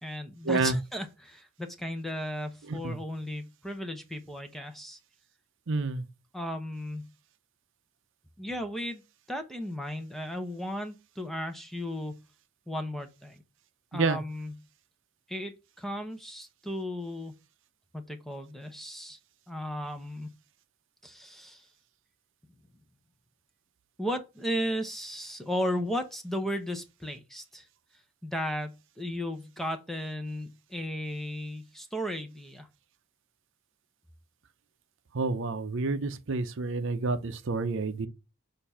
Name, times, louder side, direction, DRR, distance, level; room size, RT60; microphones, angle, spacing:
voice 1, 0.0-5.0 6.3-7.1 8.4-9.0 9.3-12.2 12.7-13.4 13.9-14.6 15.3-17.3 17.9-19.2 19.5-20.3 21.0-21.7 24.0-27.7 28.2-32.7, equal, ahead, 0.8 m, -35 dB
voice 2, 5.7-6.0 13.9-14.2 35.1-38.1, right 3 dB, 60° right, 0.6 m, -29 dB
6.7 x 2.6 x 5.5 m
head